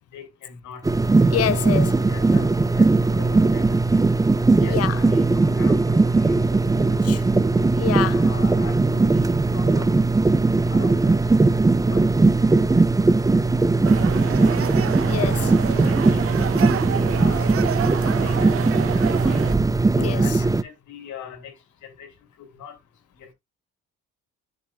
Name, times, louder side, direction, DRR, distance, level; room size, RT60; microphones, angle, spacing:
voice 1, 0.1-0.8 2.1-3.8 4.6-7.0 7.4-7.7 8.2-10.1 10.7-11.2 11.8-12.1 12.5-13.1 13.9-14.6 15.3-19.4 19.9-21.5 21.8-22.1 22.4-22.7 23.2-23.3, left 7 dB, 75° left, 2.8 m, -42 dB
sound 1, 0.8-20.6, right 3 dB, 10° right, 0.5 m, -19 dB
voice 2, 1.3-2.1 4.6-5.0 7.0-7.2 7.8-8.3 15.1-15.5 20.0-20.4, left 12 dB, 55° left, 0.5 m, -27 dB
sound 2, 13.8-19.6, right 10 dB, 50° right, 0.7 m, -28 dB
10.0 x 5.4 x 2.4 m
cardioid pair, 90°, 30 cm